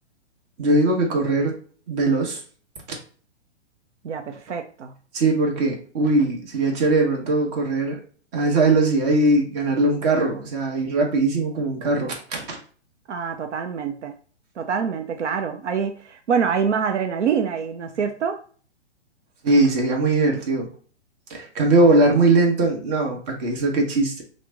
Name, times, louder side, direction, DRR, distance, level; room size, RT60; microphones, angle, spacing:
voice 1, 0.6-1.6 1.9-2.4 5.1-8.0 8.3-12.6 19.4-20.7 21.3-24.2, right 2 dB, 35° right, 0 dB, 1.1 m, -20 dB
voice 2, 4.0-4.9 13.1-14.1 14.6-18.4, right 6 dB, 85° right, 6 dB, 0.6 m, -25 dB
3.0 x 2.1 x 3.3 m, 0.43 s
hypercardioid pair, 130°, 35 cm